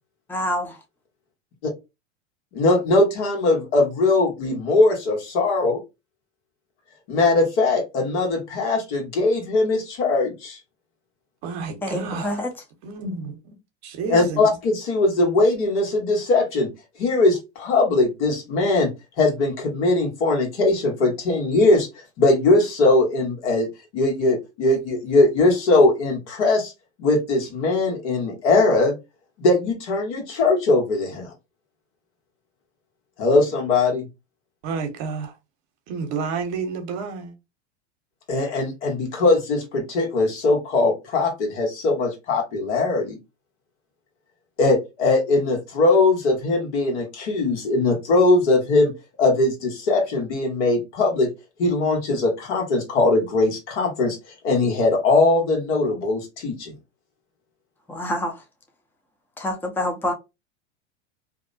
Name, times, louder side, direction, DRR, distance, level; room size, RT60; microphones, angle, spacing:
voice 1, 0.3-0.8 11.8-12.5 57.9-58.4 59.4-60.1, left 1 dB, 5° left, 0.6 m, -27 dB
voice 2, 2.5-5.8 7.1-10.6 14.1-16.7 17.0-18.9 19.2-21.9 22.2-23.7 23.9-26.7 27.0-28.9 29.4-31.3 33.2-34.0 38.3-43.2 44.6-48.9 49.2-51.3 51.6-54.2 54.4-56.7, left 2 dB, 75° left, 1.3 m, -20 dB
voice 3, 11.4-12.4 12.8-13.6 13.8-14.5 34.6-35.3 35.9-37.3, right 5 dB, 50° right, 0.9 m, -30 dB
2.7 x 2.0 x 2.5 m
hypercardioid pair, 100°, 35 cm